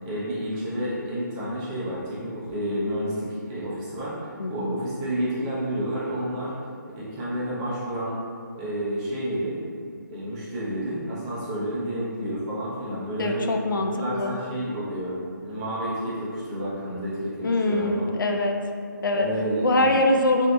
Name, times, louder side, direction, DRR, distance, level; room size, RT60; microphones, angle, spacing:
voice 1, 0.0-6.5 7.0-8.2 8.5-9.6 10.1-13.4 13.9-15.1 15.4-18.1 19.1-20.0, equal, 15° right, -9 dB, 0.6 m, -30 dB
voice 2, 4.4-4.7 13.2-14.4 17.4-18.6 19.0-19.3 19.6-20.5, left 2 dB, 85° left, 3 dB, 0.4 m, -23 dB
3.9 x 2.7 x 2.2 m, 2.4 s
hypercardioid pair, 165°, 11 cm